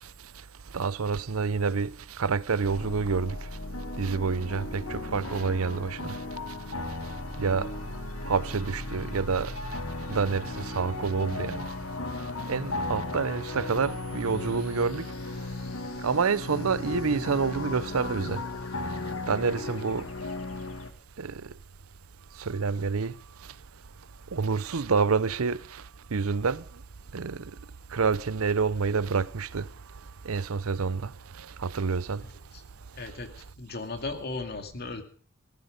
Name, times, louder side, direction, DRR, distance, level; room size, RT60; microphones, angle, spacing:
voice 1, 0.7-3.4 4.0-6.2 7.4-7.7 8.3-9.5 10.1-11.7 12.5-15.1 16.0-18.4 19.3-20.1 21.2-21.4 22.4-23.1 24.3-25.8 26.1-26.6 27.1-27.4 27.9-29.7 30.2-31.1 31.4-32.2, right 5 dB, 90° right, 0.7 m, -28 dB
sound 1, 2.6-20.9, left 2 dB, 85° left, 2.0 m, -36 dB
voice 2, 32.9-35.0, left 3 dB, 50° left, 2.4 m, -36 dB
18.0 x 15.0 x 5.2 m
head